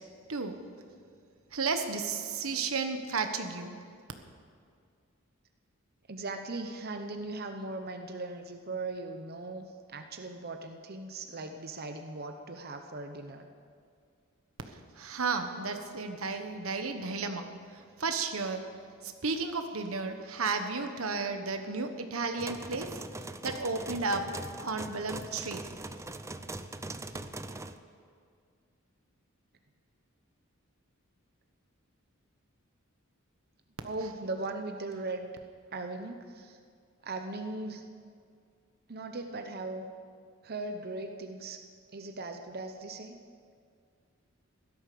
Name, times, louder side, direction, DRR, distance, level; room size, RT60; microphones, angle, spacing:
voice 1, 1.5-3.7 15.0-17.5 18.0-18.7 19.0-23.0 23.4-24.3 24.6-25.6, right 4 dB, 90° right, 6 dB, 1.3 m, -33 dB
voice 2, 6.1-13.5 33.8-35.3 35.7-36.6 37.0-37.8 38.9-39.9 40.4-41.6 41.9-43.2, right 2 dB, 50° right, 6 dB, 0.9 m, -39 dB
sound 1, 22.4-27.8, right 2 dB, 15° right, 0.5 m, -41 dB
16.0 x 13.0 x 6.9 m, 2.2 s
head